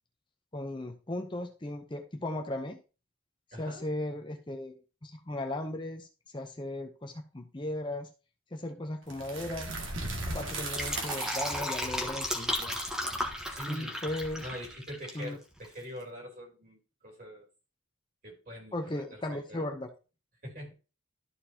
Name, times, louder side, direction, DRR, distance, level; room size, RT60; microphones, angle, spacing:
voice 1, 0.5-2.8 3.6-4.7 5.0-6.1 6.3-8.1 8.5-9.7 10.3-12.8 13.7-14.5 15.1-15.4 18.7-19.9, left 1 dB, 25° left, 0.7 m, -36 dB
voice 2, 3.5-3.9 13.5-14.0 14.4-17.5 18.2-19.7 20.4-20.7, equal, 45° right, 3.3 m, -44 dB
sound 1, 9.1-14.9, right 2 dB, 70° right, 2.0 m, -39 dB
Fill (with liquid), 10.5-15.3 15.6-15.7, equal, 5° right, 1.2 m, -34 dB
12.5 x 4.6 x 2.8 m
head